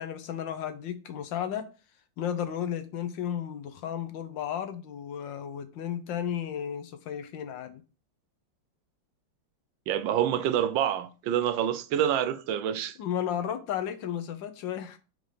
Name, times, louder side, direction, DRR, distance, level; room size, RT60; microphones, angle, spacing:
voice 1, 0.0-1.7 2.2-7.8 13.0-15.0, left 9 dB, 80° left, 1.5 m, -33 dB
voice 2, 9.9-13.0, right 10 dB, 90° right, 1.4 m, -27 dB
4.9 x 4.0 x 5.0 m
omnidirectional pair, 2.0 m